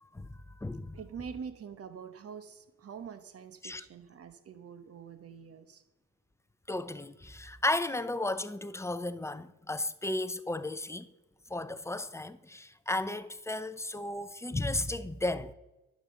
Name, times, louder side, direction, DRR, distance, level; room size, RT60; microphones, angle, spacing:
voice 1, 0.0-1.0 3.6-3.8 6.7-11.1 11.5-15.5, left 2 dB, 10° left, 0.6 m, -34 dB
voice 2, 0.9-5.8, right 6 dB, 50° right, 1.3 m, -45 dB
11.0 x 7.7 x 6.7 m
cardioid pair, 90°, 30 cm